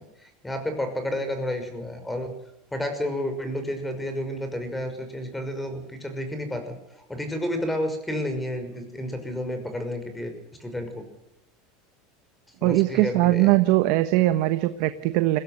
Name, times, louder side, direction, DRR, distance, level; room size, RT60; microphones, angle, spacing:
voice 1, 0.2-2.3 2.7-6.8 7.1-10.3 10.6-11.1 12.6-13.6, left 1 dB, 5° left, 7 dB, 5.8 m, -31 dB
voice 2, 12.6-15.4, right 17 dB, 65° right, 10 dB, 1.2 m, -21 dB
22.0 x 16.0 x 8.0 m, 0.89 s
supercardioid pair, 120°, 0 cm